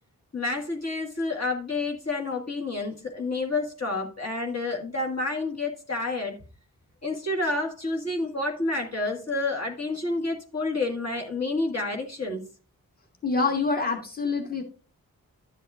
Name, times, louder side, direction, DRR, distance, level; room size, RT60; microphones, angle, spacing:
voice 1, 0.3-6.4 7.0-12.5, left 2 dB, 45° left, 1.8 m, -29 dB
voice 2, 13.2-14.6, left 4 dB, 25° left, 1.6 m, -26 dB
12.0 x 7.5 x 2.4 m
cardioid pair, 55°, 36 cm